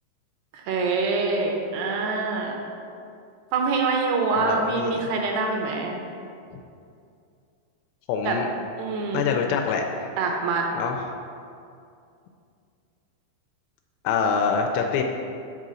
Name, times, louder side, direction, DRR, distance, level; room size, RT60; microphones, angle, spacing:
voice 1, 0.5-2.6 3.5-6.0 8.2-8.4 8.8-9.3 10.2-10.7, right 4 dB, 75° right, 1 dB, 2.7 m, -25 dB
voice 2, 4.4-5.1 8.1-8.5 9.1-10.1 10.7-11.0 14.0-15.0, left 6 dB, 85° left, 3 dB, 2.6 m, -25 dB
8.3 x 3.9 x 6.2 m, 2.5 s
omnidirectional pair, 5.0 m